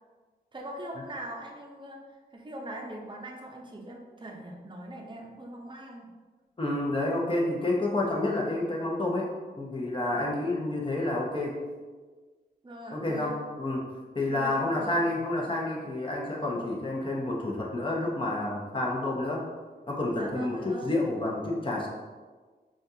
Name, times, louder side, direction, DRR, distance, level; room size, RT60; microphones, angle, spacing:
voice 1, 0.5-2.0 2.3-6.1 12.6-13.3 14.3-15.0 20.1-21.0, right 1 dB, 30° right, 0 dB, 0.7 m, -41 dB
voice 2, 6.6-9.3 9.6-11.6 12.9-19.4 19.9-21.9, left 2 dB, 30° left, -2 dB, 0.9 m, -29 dB
5.1 x 2.4 x 2.7 m, 1.4 s
wide cardioid pair, 65°, 17 cm